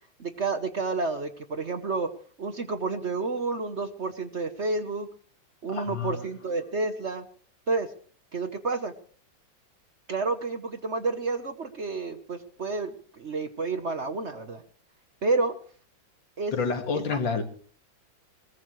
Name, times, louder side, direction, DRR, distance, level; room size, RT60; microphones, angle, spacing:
voice 1, 0.2-2.1 2.4-5.1 5.6-7.3 7.7-7.9 8.3-8.9 10.1-14.6 15.2-15.6 16.4-16.5 16.9-17.2, right 3 dB, 45° right, 9 dB, 1.1 m, -30 dB
voice 2, 5.7-6.2 16.5-17.4, left 5 dB, 75° left, 6 dB, 2.8 m, -28 dB
21.0 x 19.0 x 3.2 m, 0.43 s
omnidirectional pair, 2.1 m